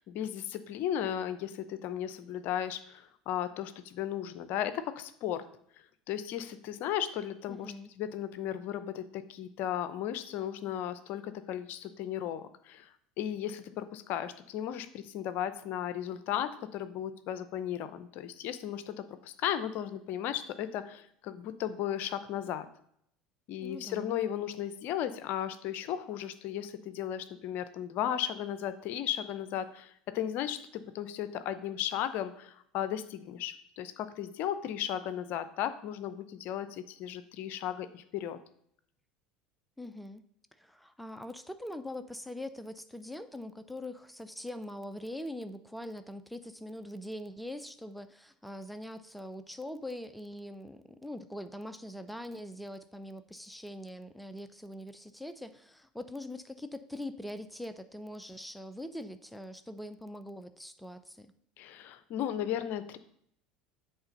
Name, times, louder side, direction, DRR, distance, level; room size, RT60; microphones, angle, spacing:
voice 1, 0.0-5.4 6.1-12.9 13.2-22.7 23.5-38.4 61.6-63.0, left 10 dB, 55° left, 12 dB, 0.6 m, -35 dB
voice 2, 7.5-7.9 23.6-24.2 39.8-40.2 40.5-61.3, left 1 dB, ahead, 9 dB, 0.5 m, -42 dB
8.0 x 3.7 x 5.3 m, 0.68 s
hypercardioid pair, 75°, 4 cm